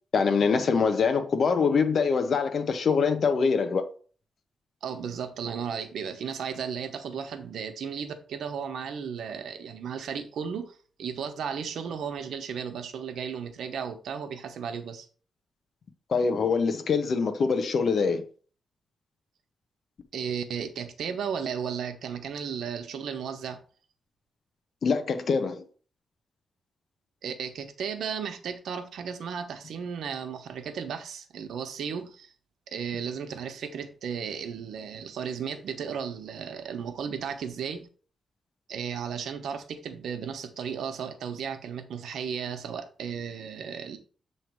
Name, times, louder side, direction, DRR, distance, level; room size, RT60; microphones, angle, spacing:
voice 1, 0.1-3.8 16.1-18.2 24.8-25.6, left 5 dB, 60° left, 0.8 m, -24 dB
voice 2, 4.8-15.1 20.1-23.6 27.2-32.3 32.7-37.9 38.7-44.0, right 7 dB, 90° right, 0.9 m, -34 dB
7.4 x 3.2 x 4.6 m
cardioid pair, 105°, 0 cm